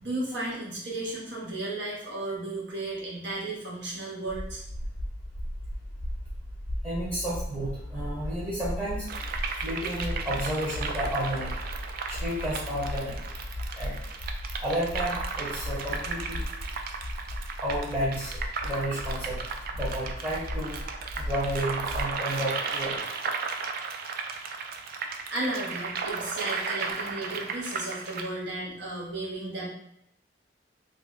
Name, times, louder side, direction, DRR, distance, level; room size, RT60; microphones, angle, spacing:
voice 1, 0.0-4.6 25.3-29.7, right 2 dB, 70° right, -4 dB, 1.0 m, -34 dB
sound 1, 4.3-22.1, equal, 30° left, 0.3 m, -36 dB
voice 2, 6.8-9.2 9.6-11.5 12.1-13.2 13.7-13.9 14.6-16.4 17.6-18.4 18.6-23.0, equal, 15° right, -8 dB, 0.8 m, -32 dB
sound 2, 9.1-28.3, right 5 dB, 50° right, 0.3 m, -35 dB
2.6 x 2.1 x 3.7 m, 0.79 s
head